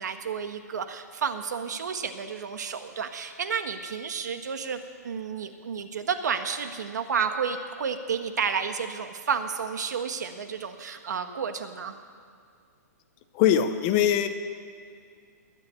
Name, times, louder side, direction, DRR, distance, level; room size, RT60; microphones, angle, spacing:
voice 1, 0.0-12.0, right 6 dB, 75° right, 8 dB, 1.5 m, -31 dB
voice 2, 13.3-14.3, left 10 dB, 20° left, 10 dB, 0.5 m, -21 dB
21.0 x 7.0 x 9.4 m, 2.2 s
hypercardioid pair, 180°, 9 cm